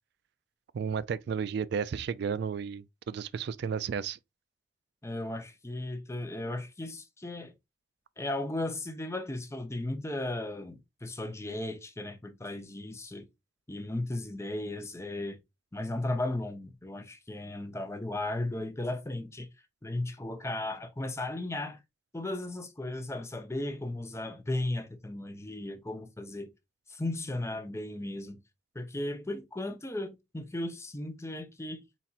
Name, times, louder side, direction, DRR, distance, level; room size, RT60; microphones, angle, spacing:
voice 1, 0.7-4.2, right 6 dB, 65° right, 0.3 m, -33 dB
voice 2, 5.0-7.5 8.2-13.3 13.7-15.4 15.7-19.5 19.8-21.8 22.1-26.5 26.9-28.4 28.7-31.9, left 1 dB, 15° left, 0.7 m, -35 dB
4.2 x 4.1 x 2.4 m
head